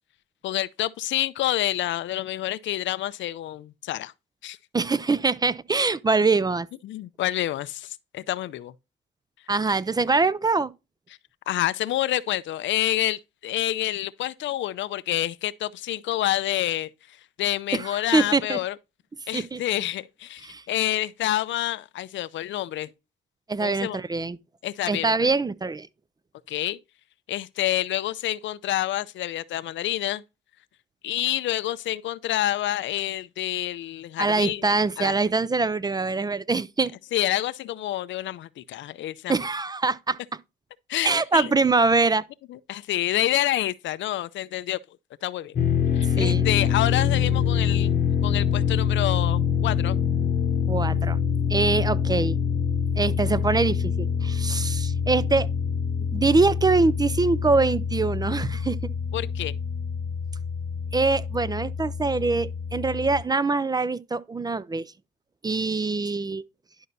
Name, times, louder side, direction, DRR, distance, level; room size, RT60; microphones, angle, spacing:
voice 1, 0.4-4.1 4.4-4.6 6.8-8.7 11.5-18.7 19.3-22.9 23.6-24.0 24.6-25.1 26.5-26.8 27.3-30.2 31.0-34.6 35.0-35.1 37.1-39.3 40.9-41.5 42.5-44.8 45.2-45.6 45.9-47.9 48.2-50.0 59.1-59.5, left 13 dB, 70° left, 0.5 m, -28 dB
voice 2, 4.7-6.7 9.5-10.7 17.7-18.6 19.3-19.6 20.4-20.6 23.5-24.4 24.9-25.9 34.2-36.9 39.3-40.2 41.0-42.2 46.2-46.5 50.7-51.2 51.5-52.4 53.0-55.5 56.1-58.8 60.9-64.9 65.4-66.4, right 3 dB, 20° right, 0.4 m, -23 dB
sound 1, 45.6-63.2, left 7 dB, 45° left, 0.9 m, -25 dB
11.0 x 5.5 x 2.6 m
cardioid pair, 90°, 20 cm